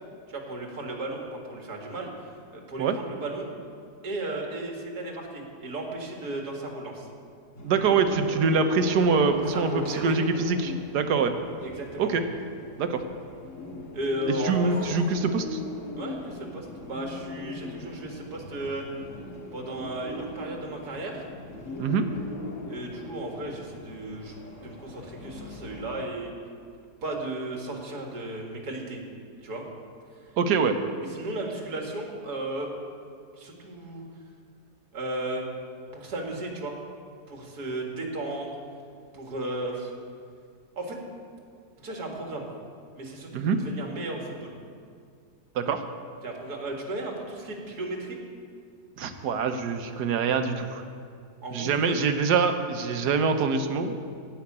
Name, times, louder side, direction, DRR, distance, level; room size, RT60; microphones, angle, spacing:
voice 1, 0.3-3.5 4.0-7.1 9.5-10.2 11.6-12.1 13.9-14.7 16.0-18.8 19.5-21.3 22.7-26.3 27.0-29.0 29.4-29.6 31.1-32.7 33.3-34.0 34.9-35.5 35.9-36.8 37.3-38.5 39.1-39.9 40.8-41.0 41.8-42.5 42.9-44.5 46.2-48.2 51.4-52.0, right 2 dB, 70° right, 1 dB, 2.4 m, -35 dB
sound 1, 7.6-26.0, left 2 dB, 50° left, 2.0 m, -39 dB
voice 2, 7.6-11.3 12.0-12.2 12.8-13.0 14.4-15.6 21.8-22.1 30.4-30.7 43.3-43.6 45.5-45.8 49.0-50.8 51.5-54.0, right 5 dB, 90° right, 7 dB, 1.5 m, -24 dB
16.5 x 5.8 x 8.6 m, 2.2 s
omnidirectional pair, 1.7 m